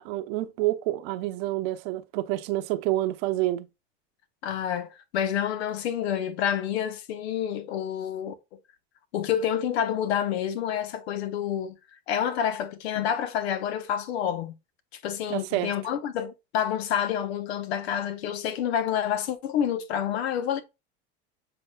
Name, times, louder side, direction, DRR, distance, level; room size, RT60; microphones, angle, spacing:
voice 1, 0.0-3.7 15.3-15.7, right 16 dB, 65° right, 0.7 m, -28 dB
voice 2, 4.4-8.3 9.1-11.8 12.1-14.5 14.9-20.6, left 9 dB, 85° left, 0.7 m, -28 dB
6.8 x 3.5 x 2.2 m
hypercardioid pair, 90°, 31 cm